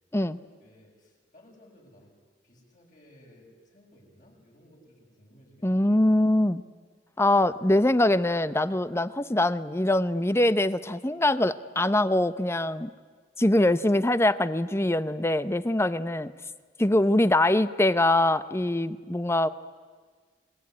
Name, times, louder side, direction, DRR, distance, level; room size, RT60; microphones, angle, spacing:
voice 1, 0.6-2.1 2.4-5.7, left 1 dB, 45° left, -1 dB, 7.3 m, -57 dB
voice 2, 5.6-6.6 7.2-12.9 13.4-16.3 16.8-19.5, left 1 dB, 15° left, 15 dB, 0.7 m, -23 dB
29.0 x 21.5 x 9.7 m, 1.5 s
head